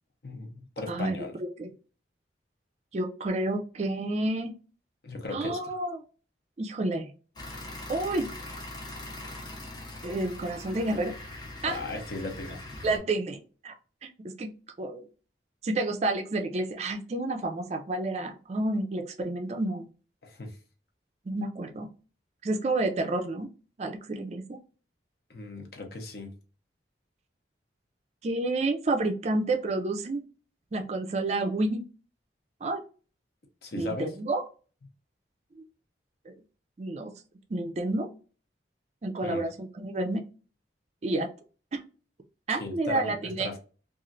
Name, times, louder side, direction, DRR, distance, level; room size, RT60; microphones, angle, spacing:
voice 1, 0.2-1.4 5.0-5.7 11.7-12.6 20.2-20.6 25.3-26.3 33.6-34.2 39.2-39.4 42.6-43.6, left 2 dB, 55° left, 0.7 m, -37 dB
voice 2, 0.9-1.2 1.6-1.7 2.9-4.6 5.3-6.0 6.6-7.1 7.9-8.3 10.0-11.1 11.6-11.8 12.8-13.7 14.0-14.5 14.8-15.1 15.6-19.8 21.3-21.9 22.4-23.5 23.8-24.6 28.2-30.2 30.7-31.9 32.6-32.8 33.8-34.4 35.6-35.7 36.3-36.4 36.8-37.1 37.5-38.1 39.0-40.2 41.0-41.3 41.7-41.8 42.5-43.5, right 2 dB, 35° right, 0.4 m, -30 dB
sound 1, 7.4-13.0, left 2 dB, 25° left, 0.5 m, -41 dB
3.0 x 2.4 x 2.5 m
head